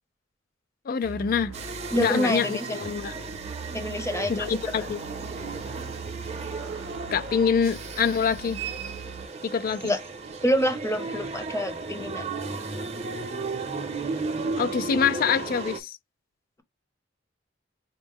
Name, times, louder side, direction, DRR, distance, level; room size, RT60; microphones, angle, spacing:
voice 1, 0.9-1.5 1.9-3.1 4.3-5.0 7.1-8.6 9.4-9.9 14.6-16.0, left 6 dB, 45° left, 0.3 m, -25 dB
sound 1, 1.0-9.3, right 4 dB, 85° right, 0.5 m, -41 dB
sound 2, 1.5-15.8, right 4 dB, 35° right, 0.6 m, -35 dB
voice 2, 1.9-2.7 3.7-4.5 9.8-10.0 10.4-12.3, equal, 15° left, 0.7 m, -27 dB
4.4 x 2.0 x 3.5 m
head